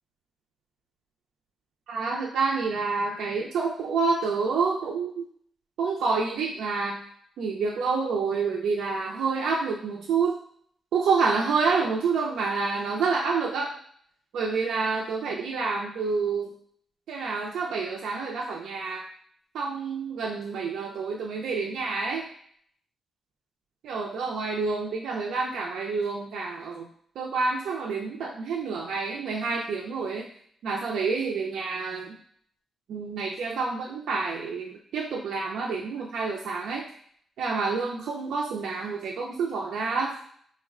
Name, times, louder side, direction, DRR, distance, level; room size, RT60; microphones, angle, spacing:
voice 1, 1.9-5.2 5.8-7.0 7.4-10.4 10.9-13.7 14.3-16.5 17.1-19.0 19.5-22.3 23.8-26.9 27.2-30.3 30.6-32.2 32.9-36.8 37.4-40.2, right 4 dB, 90° right, -2 dB, 0.4 m, -28 dB
3.8 x 2.1 x 3.5 m, 0.62 s
cardioid pair, 130°, 0 cm